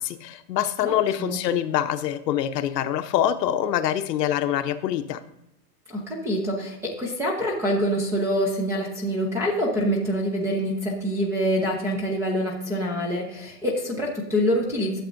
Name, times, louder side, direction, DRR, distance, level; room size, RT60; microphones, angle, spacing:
voice 1, 0.0-5.2, left 11 dB, 75° left, 10 dB, 0.9 m, -25 dB
voice 2, 0.8-1.4 5.9-15.0, equal, 5° right, 0 dB, 0.5 m, -26 dB
11.5 x 7.4 x 2.6 m, 0.84 s
supercardioid pair, 155°, 49 cm